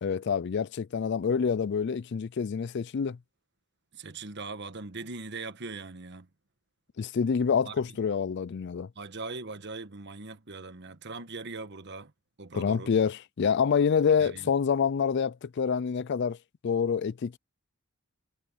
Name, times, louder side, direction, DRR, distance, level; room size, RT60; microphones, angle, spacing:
voice 1, 0.0-3.2 7.0-8.9 12.5-16.4 16.6-17.4, left 6 dB, 55° left, 0.4 m, -27 dB
voice 2, 3.9-6.3 7.6-7.7 8.9-12.1 12.4-12.9 14.2-14.5, right 3 dB, 55° right, 1.3 m, -40 dB
head